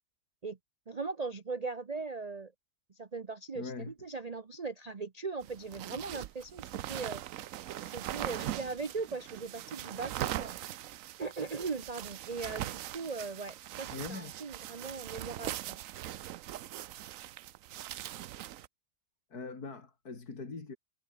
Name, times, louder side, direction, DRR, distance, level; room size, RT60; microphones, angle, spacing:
voice 1, 0.9-2.5 3.0-7.2 7.8-10.5 11.2-15.8, right 4 dB, 35° right, 0.7 m, -39 dB
voice 2, 3.5-3.9 13.9-14.3 19.3-20.8, left 4 dB, 65° left, 3.7 m, -41 dB
sound 1, 5.4-18.7, right 13 dB, 65° right, 0.9 m, -41 dB
omnidirectional pair, 1.8 m